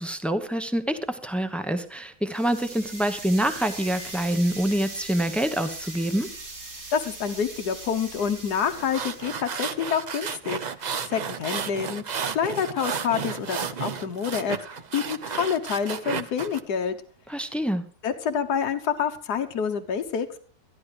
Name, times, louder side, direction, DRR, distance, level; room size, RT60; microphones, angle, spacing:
voice 1, 0.0-6.3 17.3-17.8, right 1 dB, ahead, 9 dB, 0.7 m, -26 dB
sound 1, 2.3-9.5, right 2 dB, 75° right, 3.5 m, -40 dB
voice 2, 6.9-10.6 11.1-12.0 12.3-17.0 18.0-20.4, left 7 dB, 90° left, 7 dB, 1.5 m, -27 dB
sound 2, 8.7-16.6, right 6 dB, 55° right, 0.5 m, -33 dB
14.0 x 11.5 x 4.9 m, 0.44 s
omnidirectional pair, 1.6 m